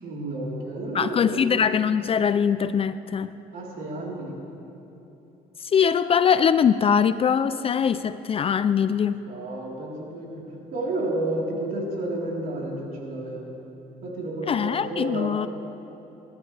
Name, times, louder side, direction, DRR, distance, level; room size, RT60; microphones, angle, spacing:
voice 1, 0.0-1.5 3.5-4.4 9.3-10.3 10.7-13.5 14.0-15.5, right 2 dB, 60° right, -4 dB, 3.9 m, -31 dB
voice 2, 0.9-3.3 5.7-9.2 14.5-15.5, left 7 dB, 35° left, 13 dB, 0.4 m, -22 dB
25.0 x 12.5 x 3.4 m, 2.9 s
cardioid pair, 110°, 17 cm